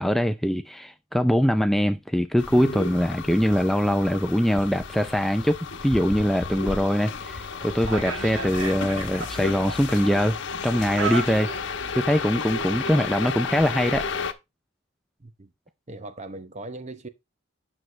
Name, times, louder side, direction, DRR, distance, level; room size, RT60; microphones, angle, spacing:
voice 1, 0.0-10.4 10.6-11.5 11.9-14.0, equal, ahead, 0.4 m, -23 dB
sound 1, 2.4-14.3, left 4 dB, 60° left, 1.0 m, -33 dB
sound 2, 7.3-13.2, right 4 dB, 75° right, 2.1 m, -36 dB
voice 2, 15.2-15.5 15.9-17.1, right 2 dB, 35° right, 0.9 m, -39 dB
10.0 x 6.2 x 3.2 m
head